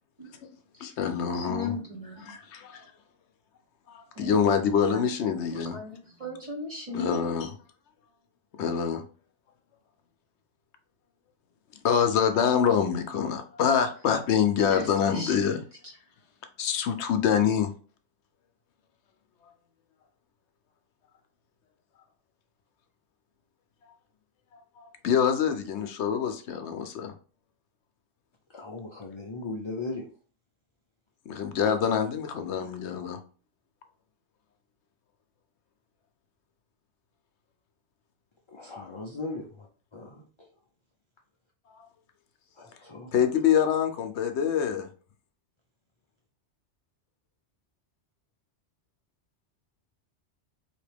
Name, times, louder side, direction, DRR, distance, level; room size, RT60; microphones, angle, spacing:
voice 1, 0.8-1.7 2.3-2.9 3.9-5.8 6.9-7.5 8.6-9.0 11.8-15.6 16.6-17.7 24.8-27.1 31.3-33.2 43.1-44.9, left 7 dB, 70° left, 7 dB, 0.9 m, -25 dB
voice 2, 1.4-2.4 4.1-4.4 4.9-5.0 5.5-7.3 14.7-15.4 15.8-15.9, left 2 dB, 30° right, 0 dB, 0.9 m, -37 dB
voice 3, 28.5-30.0 38.5-39.7 39.9-40.2 42.8-43.1, left 3 dB, 35° left, -1 dB, 0.5 m, -37 dB
4.2 x 2.8 x 3.4 m, 0.39 s
omnidirectional pair, 1.2 m